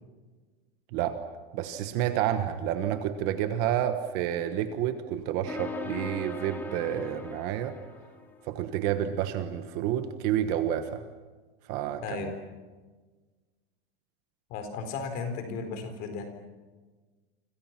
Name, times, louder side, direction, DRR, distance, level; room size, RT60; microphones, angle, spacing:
voice 1, 1.5-7.7 8.5-11.0 11.7-12.0, right 10 dB, 35° right, 9 dB, 1.3 m, -29 dB
sound 1, 5.5-8.5, left 3 dB, 5° left, 2.4 m, -39 dB
voice 2, 12.0-12.4 14.5-16.2, left 4 dB, 30° left, 6 dB, 4.3 m, -35 dB
29.5 x 26.0 x 6.0 m, 1.3 s
supercardioid pair, 180°, 29 cm